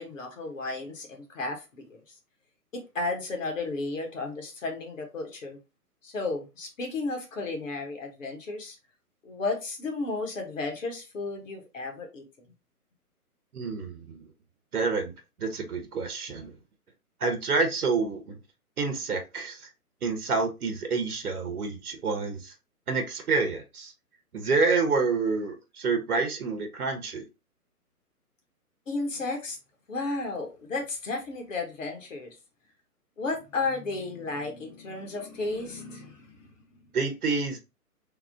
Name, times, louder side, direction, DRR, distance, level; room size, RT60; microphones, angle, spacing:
voice 1, 0.0-2.0 2.7-5.6 6.0-8.8 9.2-12.2 28.9-29.6 29.9-32.4 33.2-36.5, left 3 dB, 55° left, 1.4 m, -33 dB
voice 2, 13.5-14.3 14.7-15.1 15.4-16.5 17.2-18.4 18.8-19.7 20.0-22.5 22.9-23.9 24.3-27.2 36.9-37.6, right 4 dB, 70° right, 1.0 m, -28 dB
3.6 x 2.4 x 3.5 m
figure-of-eight pair, 135°, 46 cm